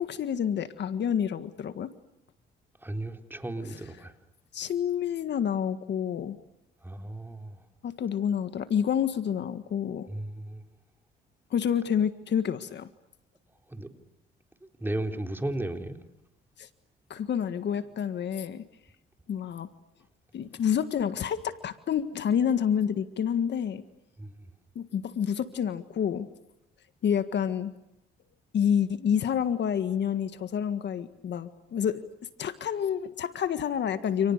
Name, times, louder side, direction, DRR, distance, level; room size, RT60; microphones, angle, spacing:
voice 1, 0.0-1.9 4.5-6.4 7.8-10.1 11.5-12.9 16.6-16.7 17.1-18.6 19.3-19.7 20.3-23.8 24.8-26.3 27.0-27.7 28.5-32.1 32.4-34.3, left 8 dB, 65° left, 1.8 m, -28 dB
voice 2, 2.8-4.1 6.8-7.6 10.1-10.6 13.7-14.0 14.8-16.0 24.2-24.4, right 1 dB, 10° right, 3.9 m, -35 dB
30.0 x 28.5 x 6.7 m
cardioid pair, 90°, 20 cm